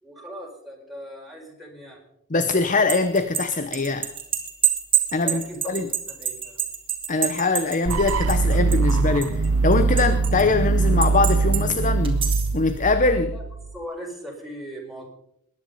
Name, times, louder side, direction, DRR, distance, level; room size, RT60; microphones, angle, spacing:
voice 1, 0.0-2.0 5.2-6.6 13.3-13.4 13.7-15.1, equal, ahead, -2 dB, 4.4 m, -39 dB
voice 2, 2.3-4.1 5.1-5.9 7.1-12.3 12.5-13.3, left 3 dB, 35° left, 10 dB, 0.9 m, -22 dB
sound 1, 2.6-8.9 9.2-10.4 11.0-11.6 12.0-12.6, right 9 dB, 25° right, 2.6 m, -26 dB
sound 2, 7.9-13.8, right 3 dB, 85° right, 0.6 m, -22 dB
21.0 x 10.5 x 5.4 m, 0.71 s
head